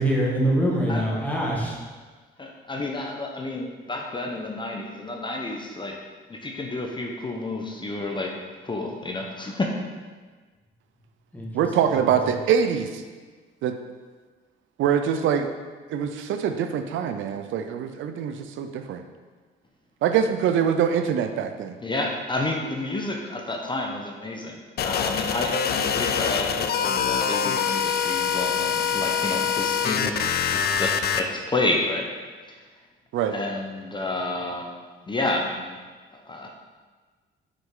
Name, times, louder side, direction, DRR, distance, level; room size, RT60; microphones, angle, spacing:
voice 1, 0.0-1.8 11.3-11.5 11.9-12.0, right 1 dB, 10° left, -4 dB, 1.6 m, -24 dB
voice 2, 2.4-6.0 6.3-8.3 8.6-9.7 21.8-30.2 30.5-32.1 33.3-34.8 35.1-35.8 36.1-36.5, left 2 dB, 25° left, 1 dB, 0.7 m, -30 dB
voice 3, 11.5-13.0 13.6-13.8 14.8-15.5 15.9-19.0 20.0-21.7 33.1-33.3, right 8 dB, 80° right, 7 dB, 0.5 m, -24 dB
sound 1, 24.8-31.2, left 7 dB, 55° left, 0.4 m, -25 dB
6.0 x 5.2 x 3.8 m, 1.4 s
cardioid pair, 90°, 20 cm